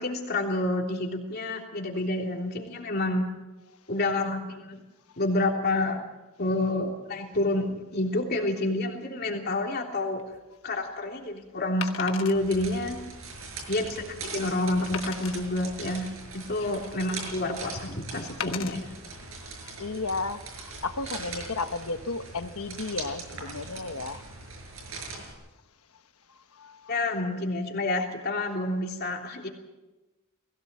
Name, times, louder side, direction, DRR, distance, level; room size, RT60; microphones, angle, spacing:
voice 1, 0.0-3.3 3.9-4.8 5.2-6.0 6.4-10.2 10.6-13.0 13.7-18.9 26.9-29.5, left 2 dB, 45° left, 3.3 m, -28 dB
Wood, 10.2-10.4 11.8-12.4 13.0-13.1 13.6-13.7 14.9-15.4 16.2-17.0 18.4-18.8 19.5-19.7, left 8 dB, 60° left, 1.4 m, -37 dB
sound 1, 12.3-25.3, right 3 dB, 65° right, 6.3 m, -41 dB
voice 2, 19.8-24.2 26.6-26.8, left 3 dB, 80° left, 1.2 m, -33 dB
20.5 x 17.0 x 7.6 m
head